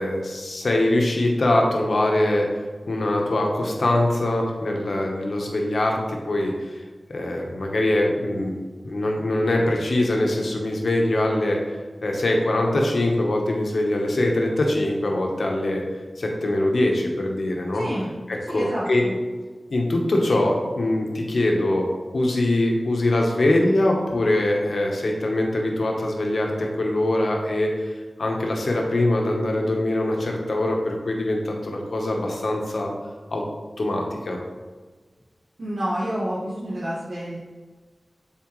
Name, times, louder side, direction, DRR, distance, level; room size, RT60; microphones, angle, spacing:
voice 1, 0.0-2.5 2.9-6.8 7.1-8.5 8.8-11.6 12.0-15.8 16.2-17.8 18.3-19.1 19.7-27.9 28.2-32.9 33.3-33.4 33.8-34.4, left 1 dB, 80° left, 1 dB, 1.0 m, -23 dB
voice 2, 17.7-18.1 18.5-19.1 35.6-37.4, equal, 80° right, -10 dB, 1.5 m, -29 dB
7.4 x 4.2 x 3.1 m, 1.4 s
wide cardioid pair, 45°, 0 cm